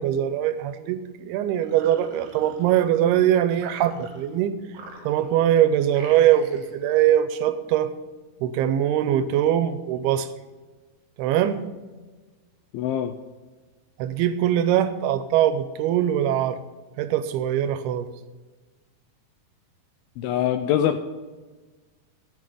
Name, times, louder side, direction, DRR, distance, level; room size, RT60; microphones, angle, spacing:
voice 1, 0.0-4.6 5.1-7.9 8.4-10.3 11.2-11.6 14.0-16.6 17.0-18.1, right 11 dB, 80° right, 11 dB, 2.5 m, -22 dB
sound 1, 1.6-3.1 3.5-4.4 4.7-5.5 5.9-6.8, right 3 dB, 55° right, 1.9 m, -45 dB
voice 2, 12.7-13.1 20.2-21.0, left 10 dB, 80° left, 8 dB, 2.2 m, -23 dB
13.0 x 6.2 x 6.8 m, 1.3 s
omnidirectional pair, 4.8 m